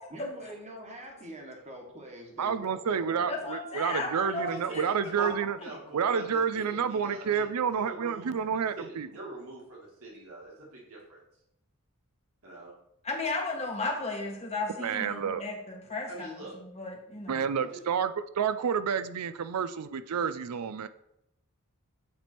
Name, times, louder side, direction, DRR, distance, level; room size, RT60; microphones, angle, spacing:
voice 1, 0.1-3.5, equal, 30° right, 0 dB, 1.4 m, -45 dB
voice 2, 2.4-5.6 5.9-9.1 14.8-15.4 17.3-20.9, right 7 dB, 85° right, 12 dB, 0.5 m, -29 dB
voice 3, 3.3-4.8 5.2-5.3 5.6-5.7 8.3-8.4 13.0-16.3 16.5-17.4, left 3 dB, 30° left, 0 dB, 1.3 m, -35 dB
voice 4, 4.3-5.3 5.6-7.5 7.7-11.2 12.4-12.7 16.1-16.6 17.6-17.8, right 2 dB, 70° right, -3 dB, 2.1 m, -44 dB
8.6 x 3.5 x 4.4 m, 0.81 s
head